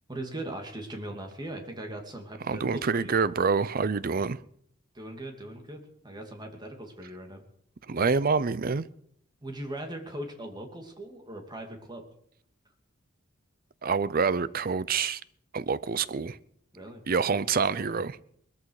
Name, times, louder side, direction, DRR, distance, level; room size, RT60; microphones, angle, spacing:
voice 1, 0.1-3.2 4.9-7.4 9.4-12.0 16.7-17.0, right 1 dB, 20° right, 2.6 m, -39 dB
voice 2, 2.5-4.4 7.9-8.8 13.8-15.2 15.5-16.4 17.1-18.2, right 5 dB, 45° right, 0.6 m, -26 dB
21.0 x 14.0 x 4.9 m
head